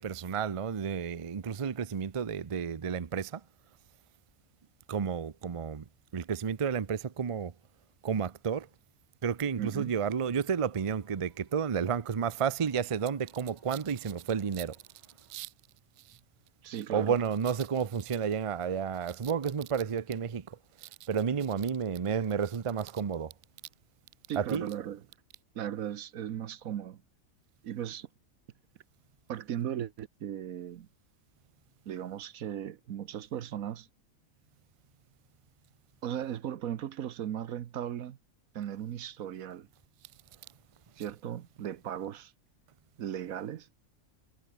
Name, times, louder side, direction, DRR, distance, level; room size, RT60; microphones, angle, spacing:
voice 1, 0.0-3.4 4.9-5.8 6.1-7.5 8.0-8.7 9.2-14.8 15.3-15.5 16.9-23.3 24.4-24.7, right 7 dB, 35° right, 0.5 m, -31 dB
voice 2, 9.6-9.9 16.6-17.2 24.3-25.0 25.5-27.0 27.6-28.1 29.3-30.9 31.9-33.9 36.0-38.2 38.5-39.7 41.0-42.3 43.0-43.7, right 10 dB, 80° right, 1.3 m, -37 dB
sound 1, 10.5-15.4, left 1 dB, 30° left, 6.4 m, -66 dB
omnidirectional pair, 1.5 m